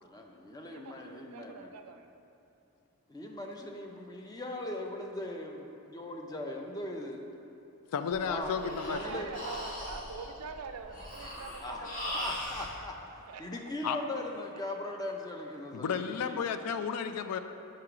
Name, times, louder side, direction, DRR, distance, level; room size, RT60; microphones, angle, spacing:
voice 1, 0.0-1.7 3.1-7.2 8.3-8.5 8.8-9.3 11.6-16.4, left 1 dB, 15° left, 1 dB, 0.4 m, -40 dB
voice 2, 0.6-2.1 8.4-12.3 13.3-13.5, right 5 dB, 85° right, 6 dB, 0.4 m, -45 dB
voice 3, 7.9-9.2 13.8-14.0 15.7-17.4, left 6 dB, 85° left, 9 dB, 0.3 m, -33 dB
Breathing, 8.1-12.7, left 1 dB, 40° left, 1.3 m, -40 dB
7.4 x 2.9 x 4.8 m, 2.8 s
head